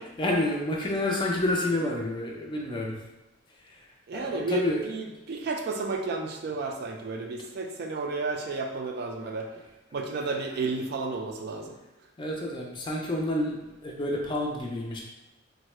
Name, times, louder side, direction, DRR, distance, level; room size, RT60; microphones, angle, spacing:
voice 1, 0.2-3.0 3.6-3.8 4.1-4.8 10.2-10.3 12.2-15.0, left 1 dB, 25° left, -1 dB, 0.4 m, -29 dB
voice 2, 4.1-9.5 9.9-11.8, right 3 dB, 50° right, 3 dB, 0.3 m, -32 dB
3.6 x 2.1 x 3.1 m, 1.0 s
head